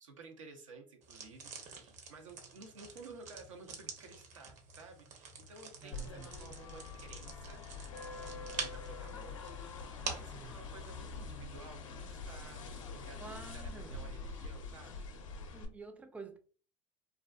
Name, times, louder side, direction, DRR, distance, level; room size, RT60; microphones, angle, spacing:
voice 1, 0.0-7.6 8.3-15.1, right 3 dB, 90° right, 0.6 m, -54 dB
sound 1, 1.0-10.4, right 5 dB, 50° right, 0.7 m, -47 dB
voice 2, 5.8-6.3 10.3-10.6 13.2-14.1 15.5-16.4, right 4 dB, 10° right, 0.4 m, -49 dB
sound 2, 5.9-15.6, left 3 dB, 80° left, 0.5 m, -45 dB
2.3 x 2.3 x 2.3 m
hypercardioid pair, 75°, 16 cm